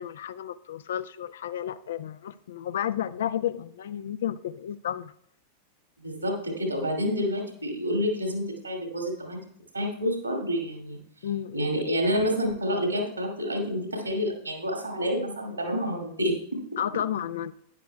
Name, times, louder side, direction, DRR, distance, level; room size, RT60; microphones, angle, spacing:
voice 1, 0.0-5.1 11.2-11.7 16.8-17.5, left 10 dB, 60° left, 16 dB, 0.4 m, -32 dB
voice 2, 6.0-9.4 9.7-11.0 11.5-16.6, equal, 80° right, 2 dB, 2.2 m, -28 dB
12.5 x 10.0 x 2.2 m, 0.69 s
figure-of-eight pair, 90°, 0 cm